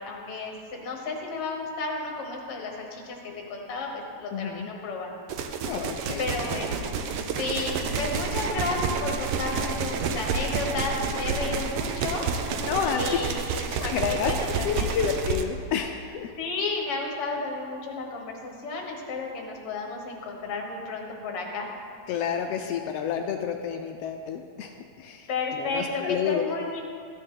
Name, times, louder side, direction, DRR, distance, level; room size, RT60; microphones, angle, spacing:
voice 1, 0.0-5.2 5.9-6.8 7.3-12.3 13.0-13.7 14.1-15.0 16.4-21.7 25.3-26.8, left 3 dB, 55° left, 1 dB, 2.1 m, -32 dB
voice 2, 4.3-4.7 5.7-6.3 12.6-13.0 13.7-14.3 14.6-16.3 22.1-25.3 25.6-26.4, left 8 dB, 80° left, 4 dB, 1.4 m, -30 dB
sound 1, 5.3-15.4, right 5 dB, 80° right, 1.3 m, -29 dB
14.0 x 9.3 x 3.8 m, 2.4 s
omnidirectional pair, 3.3 m